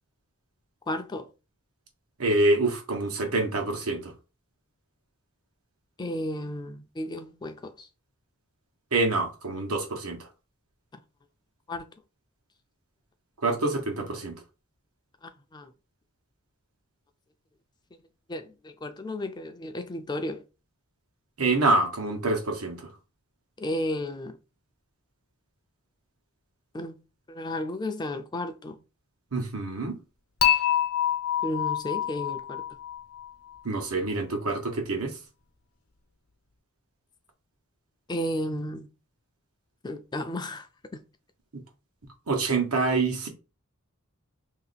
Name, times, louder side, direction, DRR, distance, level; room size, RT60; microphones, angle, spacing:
voice 1, 0.9-1.3 6.0-7.9 11.7-11.9 15.2-15.7 18.3-20.4 23.6-24.4 26.7-27.0 27.3-28.8 31.4-32.6 38.1-38.9 39.8-40.7, left 1 dB, 20° left, 0.4 m, -33 dB
voice 2, 2.2-4.1 8.9-10.2 13.4-14.3 21.4-22.8 29.3-30.0 33.6-35.2 42.3-43.3, right 2 dB, 80° right, 1.2 m, -26 dB
Dishes pots and pans / Chink clink, 30.4-33.6, left 11 dB, 80° left, 0.8 m, -26 dB
3.1 x 2.8 x 4.1 m
head